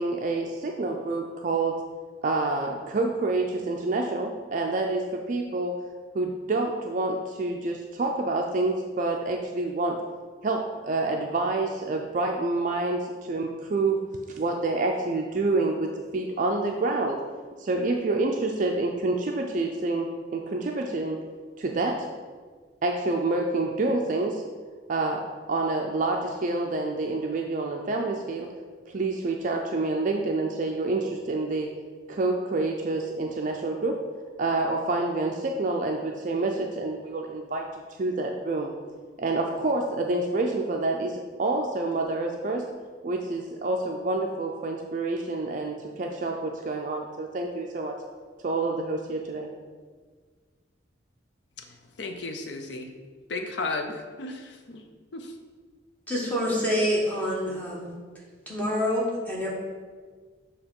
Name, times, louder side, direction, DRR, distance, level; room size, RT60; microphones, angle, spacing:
voice 1, 0.0-1.7 2.2-5.7 6.1-10.0 10.4-14.0 14.3-17.2 17.6-21.2 21.6-22.1 22.8-24.4 24.9-28.5 28.9-31.7 32.1-34.0 34.4-37.7 38.0-38.7 39.2-42.7 43.0-48.0 48.4-49.5, right 2 dB, 45° right, 2 dB, 0.4 m, -28 dB
voice 2, 52.0-52.9 53.3-54.8 55.1-55.3, left 3 dB, 65° left, 5 dB, 0.6 m, -34 dB
voice 3, 56.1-57.9 58.5-59.5, equal, 10° left, -4 dB, 1.2 m, -26 dB
7.0 x 2.9 x 5.3 m, 1.5 s
head